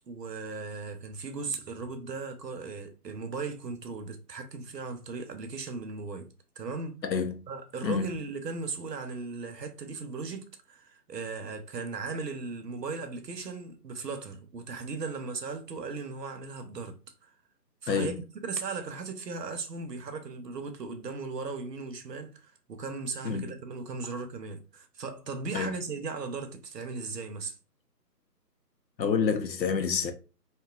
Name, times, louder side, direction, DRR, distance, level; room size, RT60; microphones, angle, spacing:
voice 1, 0.1-6.3 6.6-7.0 7.5-17.3 17.8-27.6, right 4 dB, 75° right, 0.7 m, -37 dB
voice 2, 7.0-7.4 7.8-8.1 17.9-18.1 23.2-23.5 25.5-25.7 29.0-30.1, left 6 dB, 85° left, 0.7 m, -28 dB
2.7 x 2.3 x 2.4 m
figure-of-eight pair, 155°, 50 cm